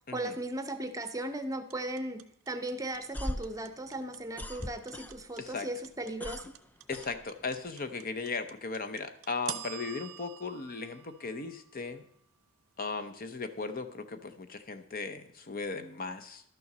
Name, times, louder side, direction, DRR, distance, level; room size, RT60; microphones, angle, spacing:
voice 1, 0.1-6.5, right 1 dB, 15° right, 8 dB, 0.7 m, -37 dB
sound 1, 1.7-11.9, right 11 dB, 75° right, 0.7 m, -45 dB
sound 2, 2.9-5.5 5.8-7.7, left 1 dB, 10° left, 0.3 m, -40 dB
voice 2, 6.9-12.0 12.8-16.4, left 4 dB, 40° left, 9 dB, 0.7 m, -37 dB
12.0 x 6.9 x 6.1 m, 0.69 s
head